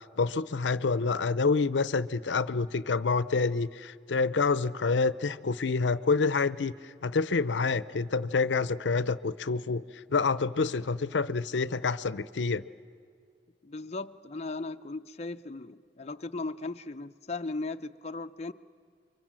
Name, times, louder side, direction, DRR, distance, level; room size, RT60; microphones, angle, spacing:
voice 1, 0.0-9.8 10.1-12.6, left 4 dB, 85° left, 16 dB, 0.6 m, -27 dB
voice 2, 13.6-18.5, left 3 dB, 35° left, 6 dB, 0.6 m, -37 dB
29.5 x 24.0 x 7.6 m, 2.3 s
head